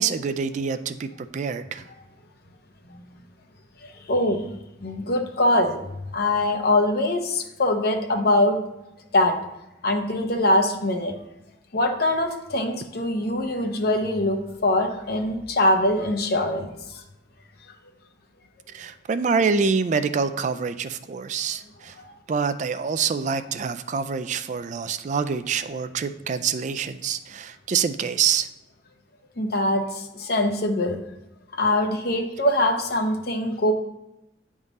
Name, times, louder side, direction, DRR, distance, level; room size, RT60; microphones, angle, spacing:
voice 1, 0.0-1.8 18.7-21.9 22.3-28.5, right 6 dB, 40° right, 11 dB, 0.3 m, -26 dB
voice 2, 3.8-4.5 4.8-5.8 6.1-8.6 9.1-9.4 9.8-11.2 11.7-17.0 29.4-31.0 31.6-33.7, left 1 dB, 60° left, 4 dB, 0.8 m, -23 dB
8.6 x 3.7 x 4.0 m, 0.91 s
head